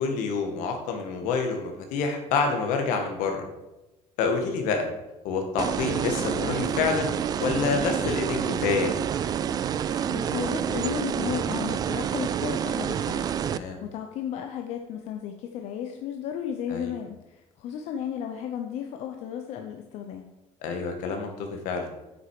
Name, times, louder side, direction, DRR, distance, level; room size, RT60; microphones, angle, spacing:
voice 1, 0.0-3.4 4.2-4.9 5.2-7.1 7.4-9.0 13.4-13.8 16.7-16.9 20.6-21.9, left 5 dB, 90° left, 4 dB, 2.0 m, -27 dB
sound 1, 5.6-13.6, right 9 dB, 30° right, 0.3 m, -28 dB
voice 2, 10.0-20.3, left 9 dB, 60° left, 4 dB, 0.8 m, -34 dB
9.2 x 6.5 x 4.9 m, 0.97 s
cardioid pair, 165°, 12 cm